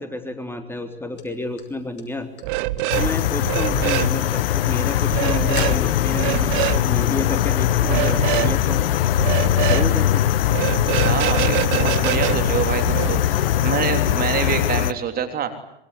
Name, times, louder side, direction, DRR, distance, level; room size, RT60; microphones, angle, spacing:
voice 1, 0.0-2.3 3.0-8.8 9.7-10.2, left 2 dB, 10° left, 7 dB, 3.7 m, -30 dB
sound 1, 1.2-2.4 2.8-3.3 3.6-6.4, left 5 dB, 40° left, 6.1 m, -34 dB
sound 2, 2.4-3.1 3.4-4.1 5.1-5.8 6.1-6.8 7.8-8.5 9.2-9.9 10.5-13.2, right 19 dB, 55° right, 1.3 m, -24 dB
sound 3, 2.9-14.9, left 12 dB, 75° left, 1.2 m, -21 dB
voice 2, 11.0-15.6, right 7 dB, 30° right, 7 dB, 3.4 m, -26 dB
26.0 x 23.5 x 9.9 m, 0.79 s
hypercardioid pair, 100°, 29 cm